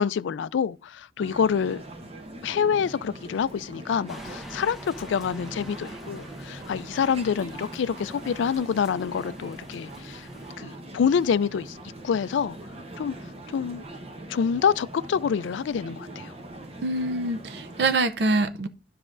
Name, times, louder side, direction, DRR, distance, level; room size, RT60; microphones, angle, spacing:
voice 1, 0.0-1.8 2.4-10.3 10.6-11.8 12.0-12.6 13.0-13.1 13.5-13.8 14.3-16.3, left 7 dB, 75° left, 0.3 m, -26 dB
sound 1, 1.2-17.9, right 1 dB, 30° right, 0.8 m, -42 dB
sound 2, 4.1-10.5, equal, ahead, 0.8 m, -46 dB
voice 2, 16.8-18.7, right 2 dB, 55° right, 0.5 m, -25 dB
12.0 x 4.9 x 2.5 m
head